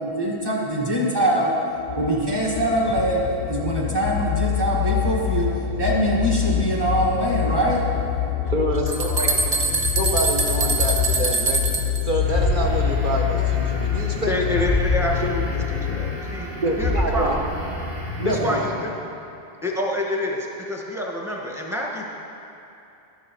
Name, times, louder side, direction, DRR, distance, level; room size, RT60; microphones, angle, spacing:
voice 1, 0.0-1.5 2.0-7.8 9.2-9.6, right 1 dB, 20° right, -4 dB, 1.9 m, -23 dB
sound 1, 1.8-16.2, left 11 dB, 60° left, 0.6 m, -26 dB
voice 2, 8.5-9.5 10.0-11.6 12.0-14.7 15.2-15.3 16.6-17.5 18.2-18.8, right 1 dB, 50° right, -1 dB, 1.2 m, -26 dB
sound 2, 8.5-12.0, right 4 dB, 70° right, 1.3 m, -23 dB
sound 3, 12.2-18.9, left 1 dB, 85° right, 2.6 m, -28 dB
voice 3, 14.3-16.5 16.8-17.4 18.2-18.9 19.6-22.1, left 1 dB, ahead, -2 dB, 1.4 m, -27 dB
12.5 x 11.0 x 4.7 m, 2.8 s
omnidirectional pair, 1.1 m